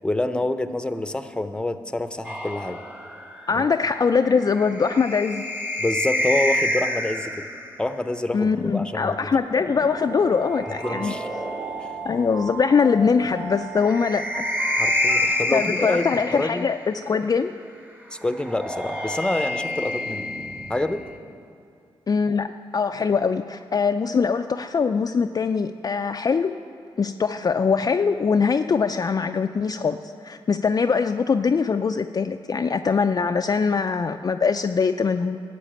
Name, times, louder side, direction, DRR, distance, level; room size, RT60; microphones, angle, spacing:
voice 1, 0.0-2.8 3.5-3.6 5.8-7.4 7.8-9.3 10.8-11.3 11.8-11.9 14.8-16.7 18.1-20.3 20.7-21.1, left 2 dB, 10° left, 10 dB, 0.7 m, -27 dB
sound 1, 2.2-7.8 9.2-12.1 13.5-17.0 18.2-21.2, left 1 dB, 20° right, 1.5 m, -29 dB
voice 2, 3.5-5.4 8.3-11.1 12.0-14.5 15.3-17.5 22.1-26.5 27.0-35.4, left 5 dB, 40° left, 7 dB, 0.4 m, -22 dB
sound 2, 9.7-15.3, right 3 dB, 80° right, 2.2 m, -37 dB
12.0 x 6.5 x 8.7 m, 2.5 s
cardioid pair, 60°, 10 cm